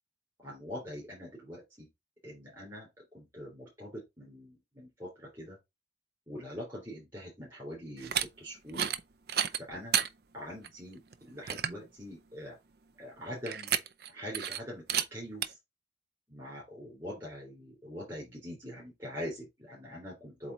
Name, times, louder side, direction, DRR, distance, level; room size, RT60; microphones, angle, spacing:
voice 1, 0.4-1.9 2.2-2.9 3.1-5.6 6.3-8.9 9.6-10.0 10.3-12.6 13.0-13.7 14.1-15.6 16.3-20.5, equal, 20° right, 3.3 m, -43 dB
sound 1, 8.0-8.3 8.7-9.0 9.3-10.1 10.6-10.7 11.1-11.2 11.5-11.8 13.5-14.1 14.3-14.6 14.9-15.1 15.4-15.5, right 9 dB, 55° right, 0.6 m, -30 dB
8.0 x 3.0 x 4.0 m
head